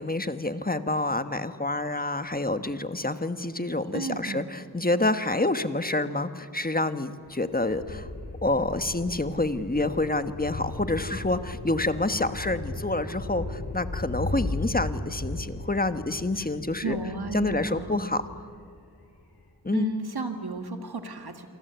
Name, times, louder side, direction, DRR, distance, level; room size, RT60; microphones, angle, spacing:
voice 1, 0.0-8.1 8.4-17.0 17.3-18.2 19.6-19.9, left 2 dB, 25° left, 10 dB, 1.5 m, -28 dB
voice 2, 3.9-4.4 16.4-16.5 16.8-18.0 19.7-21.5, right 3 dB, 80° right, 6 dB, 2.2 m, -33 dB
sound 1, 7.3-18.6 19.0-19.2, left 2 dB, 85° left, 5.1 m, -36 dB
28.5 x 24.5 x 8.2 m, 2.3 s
wide cardioid pair, 50°, 38 cm